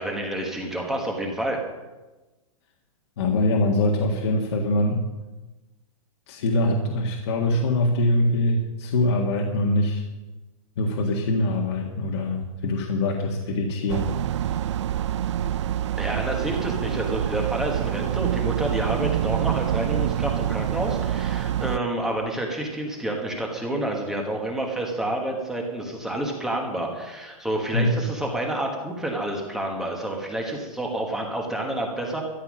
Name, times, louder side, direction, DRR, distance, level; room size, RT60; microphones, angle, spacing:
voice 1, 0.0-1.6 16.0-32.2, right 1 dB, 5° right, 0 dB, 1.3 m, -29 dB
voice 2, 3.2-5.0 6.3-10.0 10.8-14.1 27.7-28.0, left 1 dB, 45° left, 0 dB, 1.8 m, -23 dB
sound 1, 13.9-21.8, right 11 dB, 55° right, 0.5 m, -26 dB
13.5 x 11.0 x 6.3 m, 1.1 s
hypercardioid pair, 175°, 18 cm